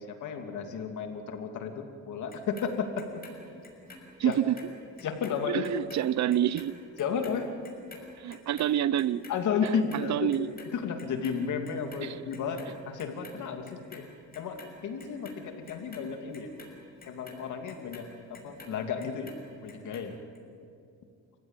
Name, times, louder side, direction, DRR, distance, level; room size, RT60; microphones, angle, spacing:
voice 1, 0.0-3.0 4.2-4.4 5.0-5.7 7.0-7.5 9.3-10.3 10.7-14.1 14.3-16.5 17.1-19.3 19.6-20.2, left 6 dB, 75° left, 5 dB, 2.8 m, -33 dB
Clock, 2.3-4.7 5.0-11.4 11.6-12.7 13.0-14.0 14.3-18.7 19.0-20.0 20.4-20.5, left 3 dB, 30° left, 5.9 m, -49 dB
voice 2, 4.2-4.5 5.5-6.8 8.2-9.2 9.6-10.5 12.0-12.1, right 11 dB, 65° right, 18 dB, 0.8 m, -27 dB
29.0 x 16.0 x 9.1 m, 2.4 s
cardioid pair, 90°, 30 cm